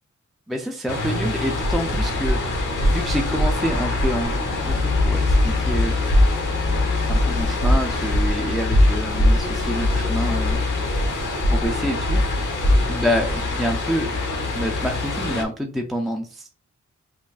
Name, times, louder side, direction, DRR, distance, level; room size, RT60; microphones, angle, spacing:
voice 1, 0.5-6.0 7.1-10.6 11.5-12.2 12.8-14.1 14.5-16.5, equal, ahead, 2 dB, 0.3 m, -27 dB
sound 1, 0.9-15.4, left 3 dB, 85° left, 0.9 m, -25 dB
sound 2, 1.6-14.5, equal, 35° left, 1.5 m, -22 dB
5.1 x 2.5 x 2.3 m, 0.39 s
wide cardioid pair, 110°, 30 cm